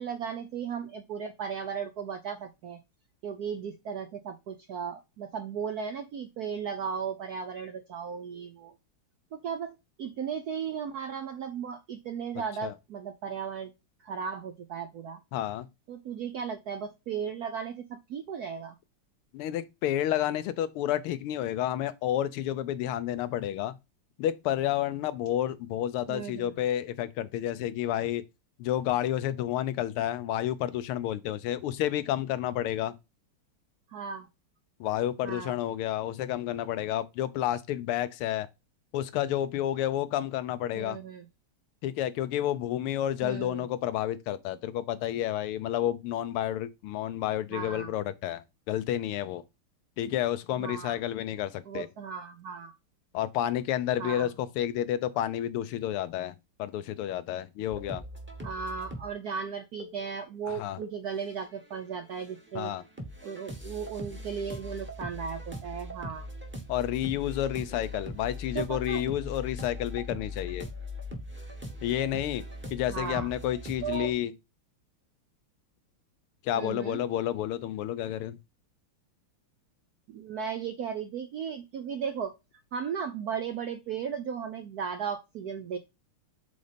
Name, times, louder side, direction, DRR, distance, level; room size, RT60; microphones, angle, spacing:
voice 1, 0.0-2.8 3.2-8.7 9.3-13.7 14.0-15.2 15.9-18.8 26.1-26.6 33.9-34.3 35.2-35.6 40.7-41.3 43.2-43.7 47.5-47.9 50.6-51.0 51.6-52.7 54.0-54.3 58.4-62.7 63.2-66.3 68.5-69.0 72.9-73.3 73.8-74.1 76.5-77.0 80.1-82.3 82.7-85.8, right 7 dB, 75° right, 0.8 m, -36 dB
voice 2, 15.3-15.7 19.3-23.8 24.2-28.2 28.6-32.9 34.8-38.5 38.9-41.0 41.8-49.4 50.0-51.9 53.1-58.0 60.5-60.8 62.5-62.8 66.7-70.7 71.8-72.4 72.7-74.3 76.4-78.4, left 12 dB, 85° left, 1.5 m, -30 dB
sound 1, 57.7-59.1 59.8-60.1 60.8-61.8 62.1-74.1, left 1 dB, 10° right, 0.8 m, -41 dB
5.2 x 4.0 x 5.0 m
omnidirectional pair, 2.4 m